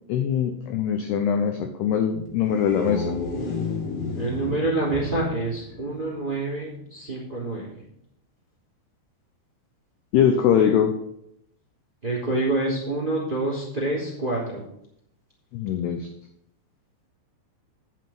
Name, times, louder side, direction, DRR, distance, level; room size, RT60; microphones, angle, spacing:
voice 1, 0.1-3.2 10.1-10.9 15.5-16.1, left 8 dB, 80° left, 4 dB, 2.5 m, -22 dB
sound 1, 2.3-6.5, left 3 dB, 55° left, 2.9 m, -32 dB
voice 2, 4.2-7.8 12.0-14.6, right 2 dB, 15° right, -5 dB, 2.3 m, -27 dB
9.4 x 7.5 x 5.9 m, 0.74 s
omnidirectional pair, 5.7 m